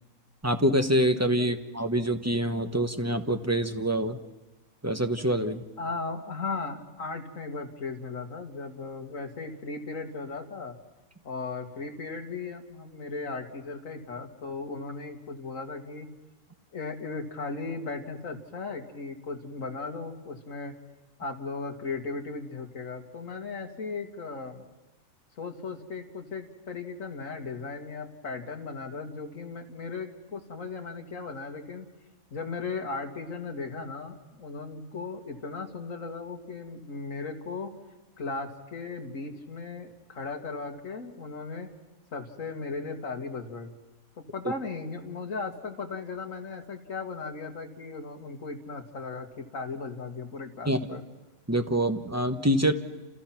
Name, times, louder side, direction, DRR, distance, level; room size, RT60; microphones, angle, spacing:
voice 1, 0.4-4.2 4.8-5.6 50.7-50.8 51.5-52.7, right 1 dB, 15° right, 7 dB, 1.0 m, -25 dB
voice 2, 5.8-10.8 11.2-16.1 16.7-20.7 21.2-24.6 25.4-31.9 32.3-37.7 38.2-41.7 42.1-43.7 44.2-51.0, left 4 dB, 65° left, 3 dB, 2.4 m, -37 dB
29.0 x 28.5 x 6.0 m, 1.1 s
omnidirectional pair, 1.5 m